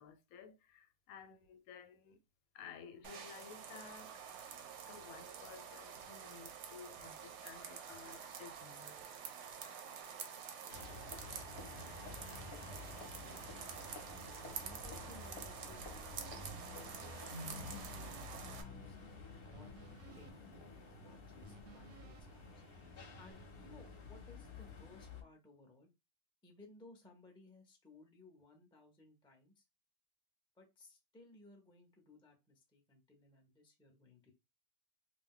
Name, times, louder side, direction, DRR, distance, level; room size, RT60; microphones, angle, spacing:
voice 1, 0.0-2.2 2.5-4.2 4.9-9.0, left 7 dB, 90° left, 1.1 m, -55 dB
sound 1, 3.0-18.6, right 7 dB, 65° right, 0.8 m, -49 dB
sound 2, 10.7-25.2, left 3 dB, 50° left, 0.8 m, -51 dB
voice 2, 11.7-13.7 14.4-19.0 19.5-19.7 20.1-22.6 23.2-25.9 26.4-29.6 30.6-34.3, left 2 dB, 5° left, 0.4 m, -61 dB
sound 3, 15.7-23.3, right 3 dB, 90° right, 1.0 m, -61 dB
2.6 x 2.1 x 3.6 m
omnidirectional pair, 1.5 m